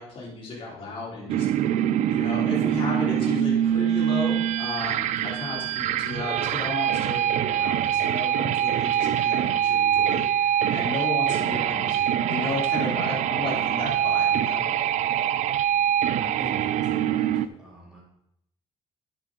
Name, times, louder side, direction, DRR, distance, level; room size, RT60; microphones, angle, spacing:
voice 1, 0.0-14.6, left 3 dB, 50° left, -4 dB, 3.5 m, -34 dB
sound 1, 1.3-17.5, right 10 dB, 85° right, 0.4 m, -24 dB
voice 2, 16.2-18.0, right 1 dB, 5° right, -7 dB, 3.7 m, -42 dB
10.0 x 7.0 x 3.8 m, 0.74 s
cardioid pair, 155°, 12 cm